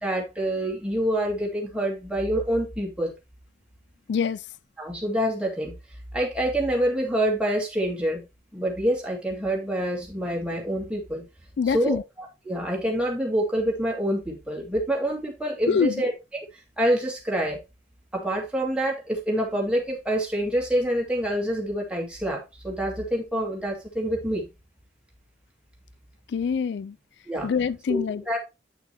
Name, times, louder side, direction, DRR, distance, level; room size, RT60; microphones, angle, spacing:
voice 1, 0.0-3.1 4.8-5.8 6.1-8.3 8.5-11.3 11.7-12.0 12.4-16.1 16.8-17.6 18.1-24.5 27.3-27.5 27.9-28.0 28.3-28.4, right 1 dB, 5° right, 2.6 m, -26 dB
voice 2, 4.1-4.5 11.6-12.0 15.7-16.0 26.3-27.0 27.4-28.2, left 6 dB, 70° left, 0.3 m, -25 dB
9.3 x 5.8 x 3.0 m
head